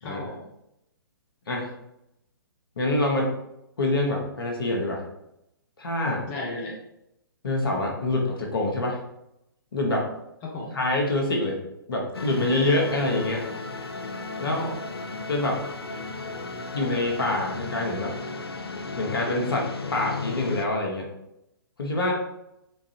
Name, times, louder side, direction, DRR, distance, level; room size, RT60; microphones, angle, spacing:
voice 1, 0.0-0.5 6.3-6.8 10.4-10.7 14.5-14.8, left 2 dB, 25° left, -2 dB, 0.6 m, -34 dB
voice 2, 2.8-3.3 3.8-5.0 5.8-6.2 7.4-9.0 9.7-10.1 10.7-11.6 11.9-13.4 14.4-14.6 15.3-15.6 16.7-18.1 19.0-21.1 21.8-22.1, left 2 dB, 65° left, 0 dB, 1.1 m, -25 dB
sound 1, 12.1-20.7, left 3 dB, 80° left, 0.4 m, -35 dB
4.4 x 2.5 x 2.8 m, 0.83 s
figure-of-eight pair, 125°, 13 cm